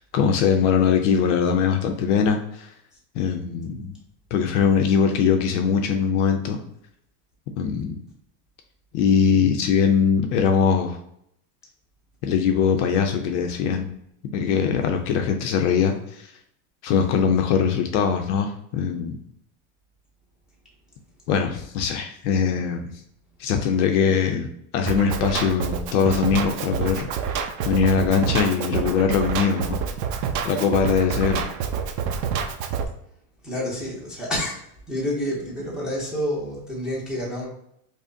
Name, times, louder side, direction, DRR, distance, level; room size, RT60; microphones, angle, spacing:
voice 1, 0.0-2.7 3.1-3.9 4.3-6.6 7.6-7.9 8.9-11.0 12.2-13.9 14.3-16.3 16.8-19.2 21.3-22.8 23.4-24.5 24.7-27.1 27.6-29.8 30.4-31.4, left 6 dB, 50° left, 4 dB, 0.5 m, -21 dB
Drum kit, 24.9-32.9, right 7 dB, 75° right, 0.6 m, -27 dB
voice 2, 33.4-34.6 34.9-37.5, equal, ahead, -6 dB, 0.5 m, -28 dB
5.0 x 2.0 x 2.6 m, 0.73 s
supercardioid pair, 150°, 49 cm